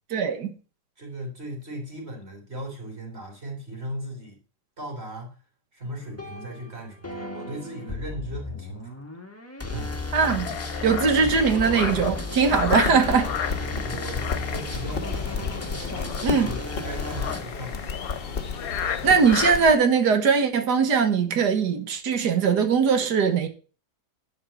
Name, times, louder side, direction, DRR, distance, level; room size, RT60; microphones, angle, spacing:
voice 1, 0.1-0.5 10.1-10.5 10.8-13.3 16.2-16.6 19.0-23.5, right 5 dB, 75° right, 1.9 m, -21 dB
voice 2, 1.0-4.4 4.8-5.4 5.7-9.0 9.7-9.9 12.4-12.6 13.6-15.6 16.4-18.4, right 1 dB, 40° right, 4.1 m, -37 dB
sound 1, 6.0-17.4, left 3 dB, 10° left, 1.2 m, -34 dB
sound 2, 10.3-19.7, left 8 dB, 60° left, 1.4 m, -34 dB
sound 3, 12.5-19.8, left 4 dB, 35° left, 1.4 m, -33 dB
11.5 x 5.4 x 7.1 m
omnidirectional pair, 1.8 m